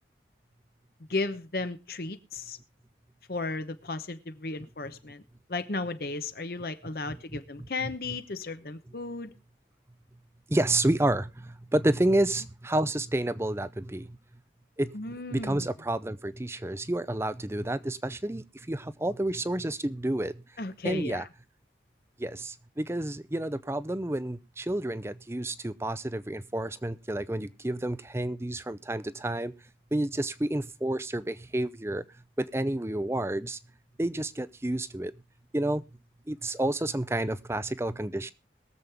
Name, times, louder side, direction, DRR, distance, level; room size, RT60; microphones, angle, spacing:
voice 1, 1.1-2.6 3.3-5.2 5.5-9.3 14.9-15.7 20.6-21.3, left 3 dB, 55° left, 0.9 m, -34 dB
voice 2, 7.1-7.4 7.8-7.9 10.5-14.2 14.8-14.9 15.3-20.4 20.8-21.2 22.2-29.5 29.9-32.0 32.4-33.6 34.0-35.1 35.5-35.8 36.3-38.3, right 1 dB, 15° right, 0.5 m, -30 dB
22.0 x 7.5 x 3.4 m
head